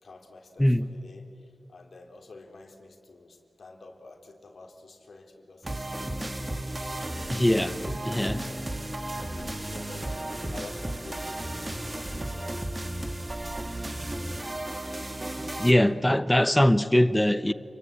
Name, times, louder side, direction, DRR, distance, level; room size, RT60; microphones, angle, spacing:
voice 1, 0.0-6.5 7.0-12.8, left 3 dB, 70° left, 3 dB, 3.6 m, -48 dB
voice 2, 0.6-0.9 7.3-7.7 8.0-8.4 15.6-17.5, left 1 dB, 10° left, 13 dB, 0.9 m, -22 dB
sound 1, 5.6-15.7, right 1 dB, 25° right, 1.9 m, -34 dB
29.0 x 22.0 x 8.8 m, 2.3 s
wide cardioid pair, 95°, 0 cm